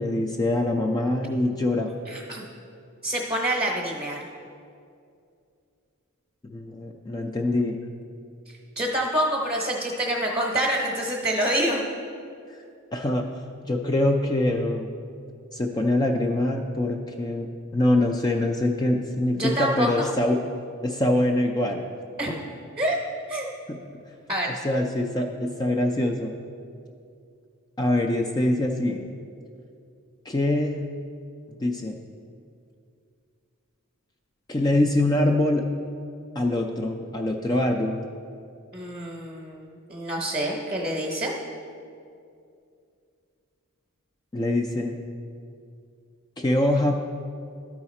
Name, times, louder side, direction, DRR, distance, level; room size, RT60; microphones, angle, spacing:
voice 1, 0.0-1.9 6.4-7.8 12.5-12.6 12.9-13.3 13.6-14.9 15.5-20.4 20.8-21.8 23.7-23.8 24.6-26.3 27.8-29.0 30.3-30.8 31.6-32.0 34.5-35.6 36.4-38.0 44.3-45.0 46.4-46.9, left 1 dB, 20° left, 2 dB, 0.3 m, -24 dB
voice 2, 2.1-2.4 3.0-4.2 8.8-11.8 19.3-20.1 22.2-22.3 22.8-23.0 23.3-23.5 24.3-24.6 38.7-41.3, right 1 dB, 20° right, -2 dB, 0.8 m, -27 dB
12.5 x 4.8 x 4.2 m, 2.4 s
head